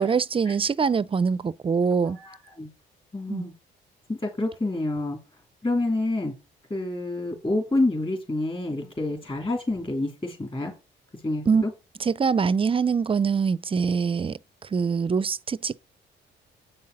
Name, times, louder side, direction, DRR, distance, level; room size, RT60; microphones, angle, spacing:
voice 1, 0.0-2.2 3.3-3.5 11.5-11.6 12.0-15.8, right 5 dB, 25° right, 0.4 m, -24 dB
voice 2, 2.1-2.7 3.1-3.5 4.1-5.2 5.6-6.3 6.7-10.7 11.2-11.7, left 2 dB, 25° left, 2.8 m, -28 dB
8.0 x 5.5 x 6.6 m
cardioid pair, 90°, 20 cm